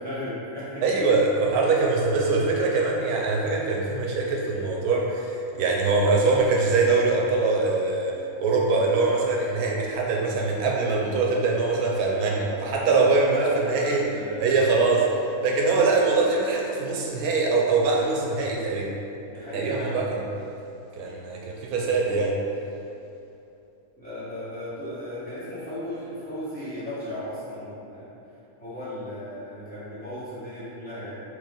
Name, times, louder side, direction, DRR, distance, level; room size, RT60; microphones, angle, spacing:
voice 1, 0.0-1.2 12.2-12.5 13.3-14.6 19.2-19.9 24.0-28.1 28.6-31.2, equal, 5° left, -13 dB, 1.3 m, -35 dB
voice 2, 0.8-14.0 14.4-15.1 15.4-18.9 19.5-20.2 21.0-22.3, right 3 dB, 80° right, -1 dB, 1.1 m, -23 dB
4.4 x 3.1 x 3.7 m, 2.8 s
omnidirectional pair, 1.6 m